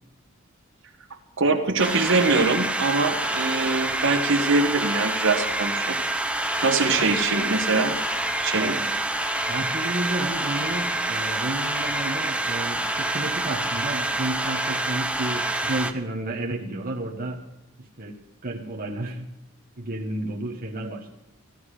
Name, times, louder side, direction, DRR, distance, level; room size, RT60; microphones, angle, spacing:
voice 1, 1.4-6.0 6.6-7.9 8.4-8.8, right 3 dB, 65° right, 5 dB, 1.4 m, -23 dB
sound 1, 1.8-15.9, right 2 dB, 5° right, 0.7 m, -27 dB
voice 2, 8.5-8.9 9.5-17.4 17.8-18.2 18.4-19.3 19.8-21.1, right 2 dB, 45° right, -1 dB, 1.2 m, -31 dB
15.0 x 12.0 x 4.9 m, 0.97 s
head